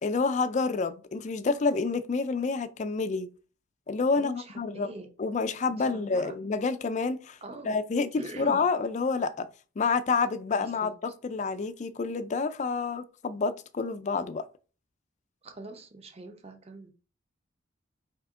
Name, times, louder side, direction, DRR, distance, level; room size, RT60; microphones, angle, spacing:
voice 1, 0.0-3.3 3.9-4.9 5.2-7.4 7.6-9.5 9.8-14.5, left 4 dB, 35° left, 0.3 m, -28 dB
voice 2, 4.2-5.1 5.7-6.3 7.4-7.8 8.2-8.6 10.6-10.9 15.4-16.9, right 2 dB, 30° right, 0.7 m, -43 dB
4.2 x 2.8 x 3.6 m
head